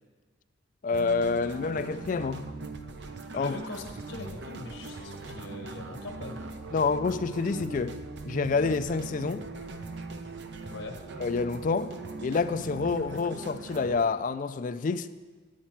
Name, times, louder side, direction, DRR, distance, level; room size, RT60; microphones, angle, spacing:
voice 1, 0.8-2.5 3.3-3.6 6.7-8.0 8.3-9.5 11.2-11.9 12.2-15.1, left 4 dB, 40° left, 0.3 m, -28 dB
sound 1, 0.9-14.0, right 3 dB, 60° right, 0.6 m, -40 dB
voice 2, 3.3-6.4 10.7-11.0, left 2 dB, 85° left, 1.2 m, -41 dB
10.0 x 8.6 x 4.5 m
head